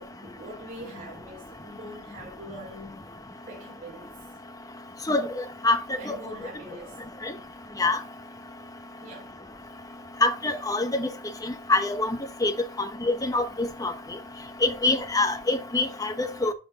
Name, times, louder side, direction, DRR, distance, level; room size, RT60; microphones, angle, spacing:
voice 1, 0.0-3.0 3.5-4.1 5.9-7.0 9.0-9.4, equal, 35° right, 3.6 m, -43 dB
voice 2, 5.6-6.2 7.8-8.0 10.2-11.1 11.7-12.1 12.4-12.5 13.1-13.9 14.6-16.5, left 2 dB, 15° left, 0.8 m, -24 dB
12.0 x 4.1 x 4.1 m
head